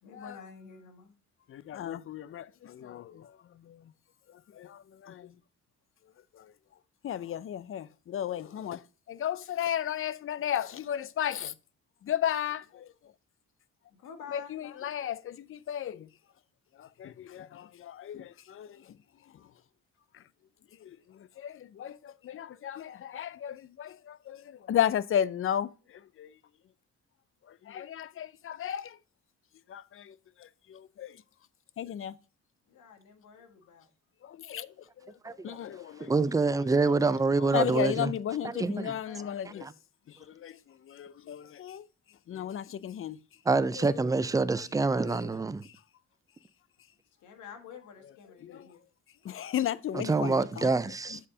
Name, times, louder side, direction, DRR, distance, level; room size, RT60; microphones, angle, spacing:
voice 1, 0.0-1.1 13.9-15.0 32.7-33.9 38.8-39.4 43.6-45.6 47.2-48.8 49.1-49.5, left 7 dB, 80° left, 1.6 m, -49 dB
voice 2, 1.5-3.9 4.5-5.3 6.3-6.5 7.0-8.8 9.1-11.5 12.0-12.9 14.3-16.1 16.8-18.9 20.1-20.2 20.8-26.3 27.5-29.0 29.7-29.8 31.0-31.2 31.8-32.1 34.2-34.7 35.0-36.1 37.4-39.7 40.3-41.9 42.3-43.2 48.4-48.7 49.2-50.7, left 10 dB, 45° left, 0.5 m, -34 dB
voice 3, 35.2-35.6 36.0-38.1 38.4-38.9 39.6-39.7 43.5-45.6 49.9-51.2, right 3 dB, 10° right, 0.4 m, -26 dB
7.5 x 4.2 x 4.9 m
cardioid pair, 90°, 30 cm